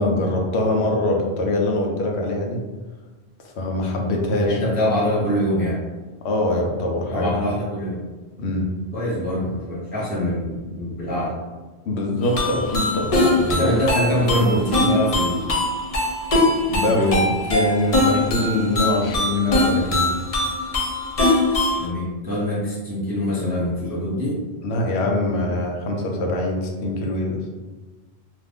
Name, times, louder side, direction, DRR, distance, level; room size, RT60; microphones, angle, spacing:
voice 1, 0.0-2.6 3.6-4.6 6.2-7.3 8.4-8.7 11.9-13.7 14.2-14.3 16.7-17.0 17.5-20.1 24.6-27.4, left 1 dB, 85° left, 1 dB, 0.9 m, -23 dB
voice 2, 4.4-5.8 7.1-8.0 8.9-11.4 13.6-15.5 16.9-17.3 21.8-24.4, equal, 10° right, -7 dB, 0.5 m, -23 dB
sound 1, 12.2-21.9, left 2 dB, 45° left, 0.5 m, -22 dB
2.5 x 2.5 x 3.4 m, 1.3 s
omnidirectional pair, 1.1 m